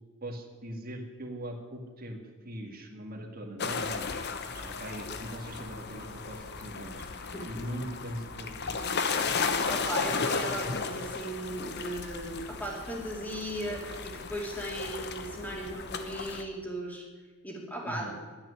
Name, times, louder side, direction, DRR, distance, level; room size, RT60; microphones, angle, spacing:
voice 1, 0.2-4.1 4.5-7.0 7.5-8.7 17.9-18.1, equal, 45° right, 3 dB, 1.9 m, -40 dB
sound 1, 3.6-16.4, left 4 dB, 50° left, 1.0 m, -34 dB
voice 2, 9.3-17.1 17.4-18.1, right 1 dB, 10° left, -1 dB, 2.6 m, -37 dB
10.5 x 9.1 x 9.8 m, 1.4 s
head